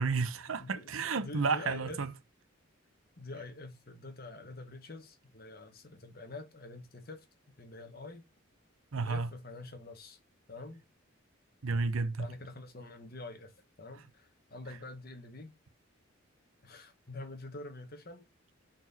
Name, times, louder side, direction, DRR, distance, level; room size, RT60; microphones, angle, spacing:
voice 1, 0.0-2.1 8.9-9.3 11.6-12.3, right 4 dB, 85° right, 0.8 m, -31 dB
voice 2, 0.6-2.0 3.2-7.3 7.6-8.2 9.0-10.2 10.5-10.8 12.2-13.5 13.8-15.5 16.6-18.2, left 2 dB, 45° left, 1.4 m, -46 dB
6.0 x 4.4 x 4.1 m
head